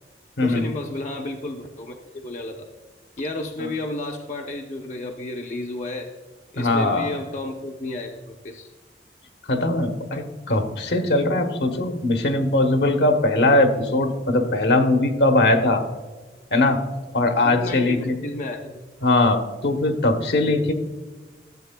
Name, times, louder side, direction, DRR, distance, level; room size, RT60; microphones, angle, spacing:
voice 1, 0.4-2.7 3.2-6.1 6.5-8.7 17.4-18.8, left 2 dB, 45° left, 2 dB, 0.5 m, -32 dB
voice 2, 6.6-7.1 9.5-15.8 16.5-16.8 17.1-18.2 19.0-20.7, left 2 dB, 70° left, 5 dB, 0.9 m, -20 dB
13.5 x 7.5 x 2.2 m, 1.3 s
head